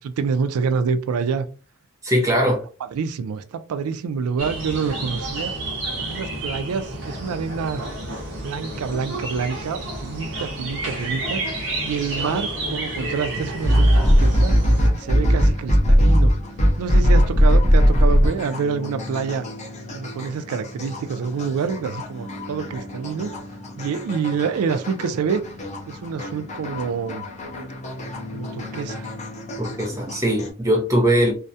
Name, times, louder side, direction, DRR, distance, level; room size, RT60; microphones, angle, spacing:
voice 1, 0.0-1.5 2.1-2.2 2.8-5.5 6.1-7.8 8.4-11.4 11.8-14.6 14.9-16.3 16.8-19.4 19.9-23.4 23.8-25.4 25.9-27.3 28.3-29.1, right 6 dB, 85° right, 0.3 m, -27 dB
voice 2, 2.0-2.6 29.6-31.3, equal, 15° right, 0.5 m, -20 dB
sound 1, 4.4-14.9, right 1 dB, 55° right, 0.8 m, -30 dB
sound 2, 13.6-30.5, equal, 30° left, 0.5 m, -21 dB
2.3 x 2.1 x 2.6 m
head